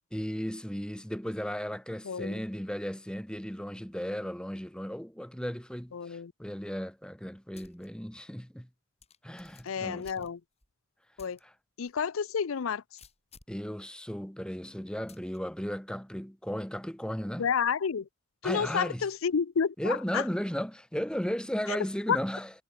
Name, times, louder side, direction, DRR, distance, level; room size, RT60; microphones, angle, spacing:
voice 1, 0.1-8.7 9.2-10.3 11.4-11.5 13.5-17.5 18.4-19.1 19.8-22.5, equal, 5° left, 1.6 m, -35 dB
voice 2, 5.9-6.3 9.6-10.4 11.2-11.4 11.8-12.8 17.4-18.1 18.4-20.2 21.7-21.8 22.1-22.2, left 6 dB, 80° left, 0.5 m, -30 dB
sound 1, 7.5-7.9 8.3-8.4 9.0-10.7 11.2-11.4 11.9-12.0 13.0-13.6 15.1-15.4, left 5 dB, 30° left, 7.9 m, -56 dB
head